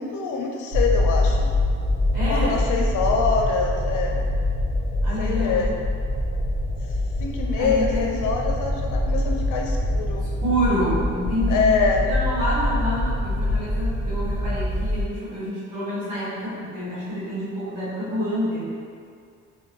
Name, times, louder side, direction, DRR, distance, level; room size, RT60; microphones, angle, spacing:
voice 1, 0.0-1.5 2.2-4.2 5.2-5.7 7.2-10.2 11.5-12.0, left 5 dB, 90° left, 1 dB, 0.5 m, -25 dB
sound 1, 0.7-15.0, left 1 dB, 65° right, 0.9 m, -24 dB
voice 2, 2.1-2.6 5.0-5.7 7.6-8.3 10.4-11.7 12.0-18.6, equal, 85° right, -10 dB, 1.4 m, -27 dB
3.7 x 2.1 x 3.0 m, 2.2 s
cardioid pair, 90°, 30 cm